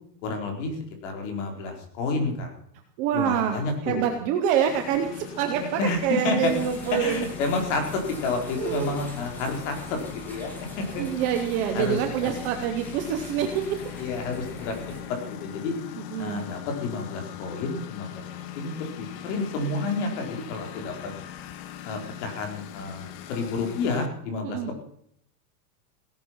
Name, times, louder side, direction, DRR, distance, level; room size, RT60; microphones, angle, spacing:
voice 1, 0.2-0.7 1.0-2.5 3.1-4.0 5.8-6.5 6.9-10.5 10.8-11.0 11.7-12.3 14.0-15.7 16.2-18.2 18.6-21.1 21.8-24.8, left 3 dB, 50° left, 3 dB, 4.5 m, -30 dB
voice 2, 3.0-7.2 8.6-9.0 11.0-13.8 16.1-16.5 24.4-24.7, right 9 dB, 15° right, 5 dB, 0.5 m, -26 dB
Engine, 4.7-24.1, left 10 dB, 25° left, 0.9 m, -41 dB
sound 1, 6.4-15.0, right 2 dB, 5° left, 2.3 m, -43 dB
17.0 x 10.5 x 5.9 m, 0.68 s
supercardioid pair, 170°, 48 cm